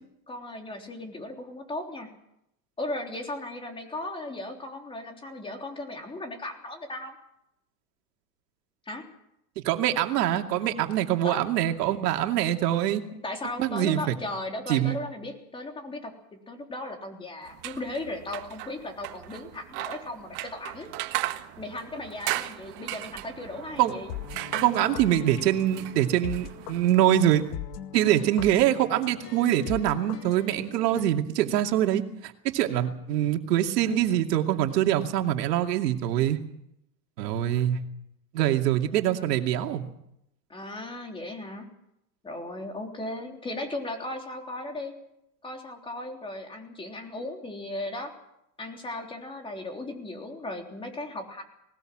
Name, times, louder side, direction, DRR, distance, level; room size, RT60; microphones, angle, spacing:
voice 1, 0.3-2.1 2.8-7.2 8.9-9.1 11.2-11.4 13.1-20.9 21.6-24.1 39.1-39.4 40.5-41.7 42.2-44.9 45.4-48.1 48.6-51.4, left 2 dB, 10° left, 3 dB, 3.5 m, -36 dB
voice 2, 9.6-13.0 13.6-14.1 14.7-15.0 23.8-23.9 24.6-27.4 27.9-36.4 37.2-37.8 38.3-39.9, right 12 dB, 75° right, 4 dB, 2.6 m, -24 dB
sound 1, 17.5-27.5, right 17 dB, 45° right, 1.6 m, -37 dB
sound 2, 23.8-31.0, left 10 dB, 75° left, 2.1 m, -41 dB
20.0 x 19.5 x 7.7 m, 0.80 s
supercardioid pair, 155°, 48 cm